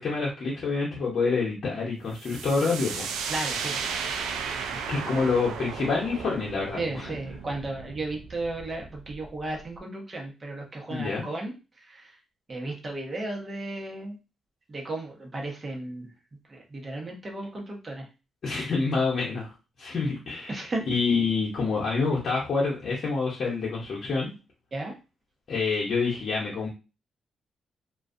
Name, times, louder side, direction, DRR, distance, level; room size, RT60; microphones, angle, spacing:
voice 1, 0.0-3.1 4.9-7.1 10.9-11.2 18.4-19.5 19.8-24.3 25.5-26.7, left 4 dB, 60° left, -6 dB, 0.8 m, -27 dB
sound 1, 2.2-9.8, right 6 dB, 85° right, 0.3 m, -35 dB
voice 2, 3.3-3.9 6.8-11.5 11.9-12.2 12.5-14.2 14.7-16.1 16.5-18.1 20.5-20.8 24.7-24.9, right 2 dB, 35° right, 1 dB, 1.0 m, -34 dB
2.4 x 2.3 x 2.5 m, 0.30 s
supercardioid pair, 55°, 0 cm